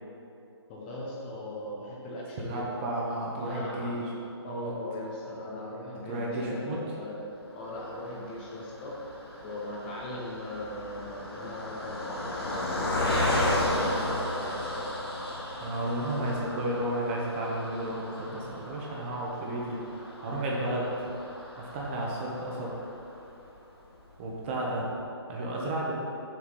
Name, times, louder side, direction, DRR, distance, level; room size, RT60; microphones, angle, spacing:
voice 1, 0.7-2.7 3.4-4.0 4.4-7.2 7.5-8.9 9.4-14.9, left 1 dB, 20° left, -3 dB, 0.8 m, -39 dB
voice 2, 2.5-4.1 4.4-4.7 6.0-6.8 15.6-19.8 20.2-20.9 21.6-22.7 24.2-24.9 25.3-25.9, right 1 dB, 25° right, -3 dB, 1.0 m, -32 dB
Car passing by, 7.8-23.2 23.8-23.9 24.1-24.3, left 1 dB, 60° left, 1.6 m, -34 dB
6.2 x 6.0 x 4.1 m, 2.8 s
figure-of-eight pair, 145°, 14 cm